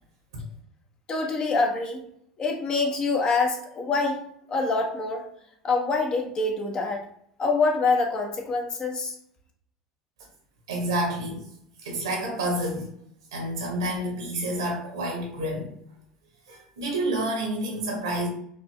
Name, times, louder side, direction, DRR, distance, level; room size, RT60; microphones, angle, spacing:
voice 1, 1.1-2.0 2.4-4.2 4.5-5.2 5.6-7.0 7.4-9.1, left 3 dB, 35° left, 2 dB, 1.1 m, -25 dB
voice 2, 10.7-11.5 11.8-12.9 13.3-15.7 16.5-18.3, right 1 dB, 75° right, 0 dB, 1.4 m, -29 dB
4.4 x 2.9 x 3.3 m, 0.68 s
figure-of-eight pair, 70°, 2 cm